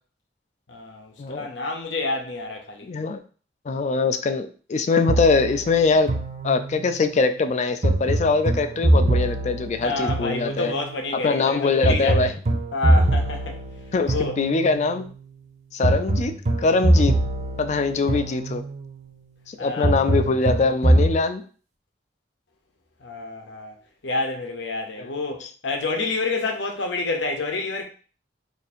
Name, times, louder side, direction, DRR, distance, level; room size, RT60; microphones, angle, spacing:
voice 1, 0.7-2.9 9.8-12.3 12.7-13.6 14.1-14.3 19.6-19.9 23.0-23.8 24.0-27.8, left 2 dB, 80° left, 0.8 m, -28 dB
voice 2, 2.8-3.2 3.7-6.1 6.4-10.7 11.1-12.3 13.9-15.1 15.7-16.3 16.6-17.2 17.6-18.6 19.5-21.4, left 4 dB, 40° left, 0.4 m, -22 dB
sound 1, 5.1-7.0 7.8-10.9 11.8-14.9 15.8-18.9 19.8-21.2, right 1 dB, 40° right, 0.6 m, -23 dB
2.6 x 2.6 x 4.2 m
head